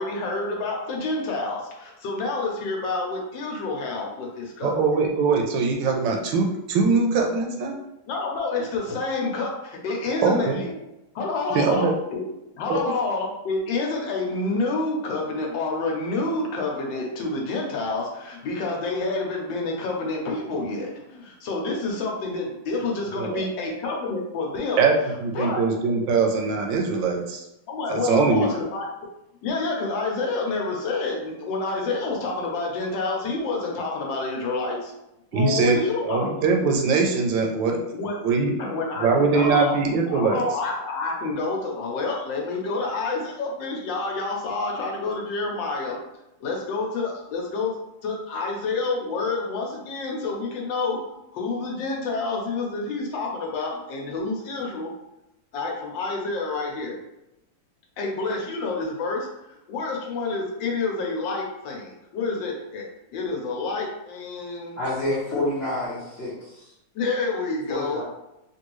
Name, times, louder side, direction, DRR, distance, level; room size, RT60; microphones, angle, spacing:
voice 1, 0.0-4.7 8.1-10.9 11.1-24.9 25.3-25.6 27.7-28.9 29.4-34.9 35.3-36.3 37.9-38.2 38.6-39.8 40.0-46.0 46.4-54.9 55.5-57.0 58.0-64.8 65.3-65.5 66.9-68.0, left 3 dB, 75° left, 0 dB, 1.4 m, -28 dB
voice 2, 4.6-7.8 10.2-10.6 11.5-11.9 12.7-12.9 23.1-23.5 24.8-24.9 25.2-27.4 27.9-28.5 35.3-37.8 38.2-38.6 39.0-40.4, right 4 dB, 75° right, 1 dB, 1.2 m, -22 dB
voice 3, 64.8-66.7 67.7-68.0, left 2 dB, 45° left, -8 dB, 0.8 m, -28 dB
3.5 x 2.6 x 3.0 m, 0.89 s
omnidirectional pair, 2.1 m